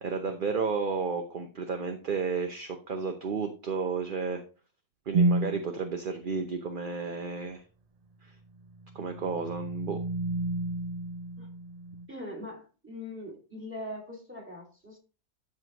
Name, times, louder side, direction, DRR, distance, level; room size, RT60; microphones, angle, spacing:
voice 1, 0.0-4.4 5.1-7.6 8.2-8.3 8.9-10.0, right 5 dB, 45° right, 5 dB, 0.8 m, -32 dB
sound 1, 5.1-5.7 8.6-12.1, right 2 dB, 80° right, 0.3 m, -30 dB
voice 2, 12.1-15.0, left 1 dB, 10° right, 0 dB, 2.3 m, -41 dB
12.5 x 4.8 x 3.0 m, 0.34 s
omnidirectional pair, 1.6 m